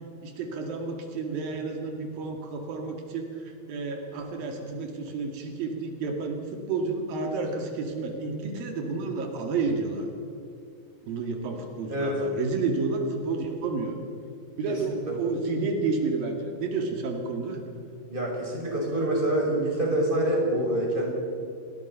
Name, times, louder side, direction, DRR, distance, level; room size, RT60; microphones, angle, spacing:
voice 1, 0.2-10.1 11.0-14.0 14.6-17.6, right 4 dB, 80° right, 3 dB, 4.0 m, -30 dB
voice 2, 18.1-21.1, right 1 dB, 15° right, -2 dB, 6.5 m, -26 dB
30.0 x 20.5 x 5.8 m, 2.6 s
omnidirectional pair, 4.1 m